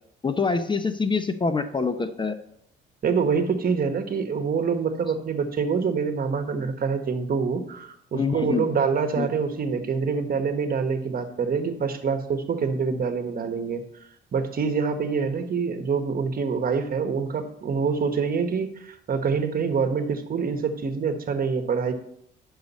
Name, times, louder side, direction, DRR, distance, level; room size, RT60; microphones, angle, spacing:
voice 1, 0.2-2.4 8.1-8.6 9.2-9.3, left 4 dB, 25° left, 10 dB, 0.7 m, -25 dB
voice 2, 3.0-13.8 14.3-21.9, right 5 dB, 45° right, 7 dB, 1.2 m, -26 dB
9.5 x 6.5 x 4.1 m, 0.70 s
cardioid pair, 90°, 20 cm